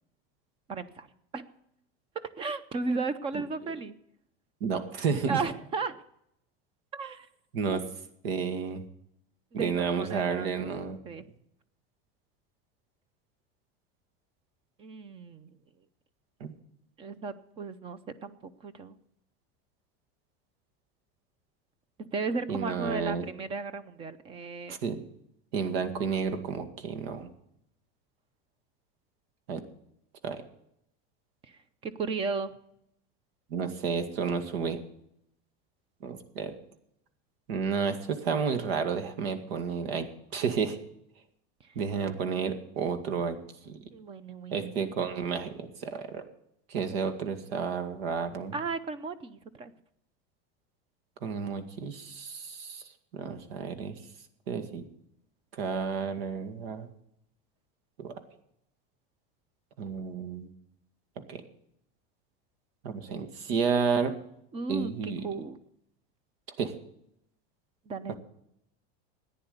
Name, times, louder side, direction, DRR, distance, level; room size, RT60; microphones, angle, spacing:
voice 1, 0.7-1.1 1.3-1.4 2.4-3.9 5.3-6.0 6.9-7.3 7.7-7.8 9.5-10.7 11.0-11.2 14.8-15.5 17.0-19.0 22.0-24.7 31.5-32.5 43.9-44.8 48.5-49.7 64.5-65.6 67.9-68.1, right 4 dB, 20° right, 15 dB, 0.6 m, -35 dB
voice 2, 4.6-5.4 7.5-7.8 8.2-8.8 9.5-11.0 16.4-16.5 22.5-23.3 24.7-25.0 25.5-27.3 29.5-29.6 30.2-30.4 33.5-34.8 36.0-36.5 37.5-40.8 41.8-43.4 43.7-43.8 44.5-46.2 46.7-48.5 51.2-52.8 53.1-54.0 54.5-54.8 55.5-56.9 58.0-58.1 59.8-60.5 61.3-61.4 62.8-64.1 64.7-65.2 66.6-66.7, right 6 dB, 85° right, 8 dB, 2.1 m, -31 dB
14.5 x 9.9 x 6.8 m, 0.75 s
supercardioid pair, 175°, 29 cm